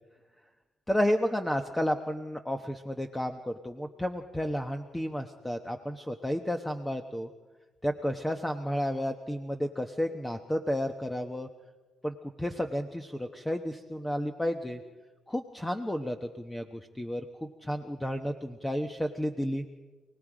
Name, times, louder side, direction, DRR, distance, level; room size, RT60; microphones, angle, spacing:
voice 1, 0.9-7.3 7.8-11.5 12.0-14.8 15.3-19.6, equal, 10° left, 5 dB, 1.1 m, -32 dB
28.5 x 19.0 x 5.1 m, 1.3 s
cardioid pair, 90°, 0 cm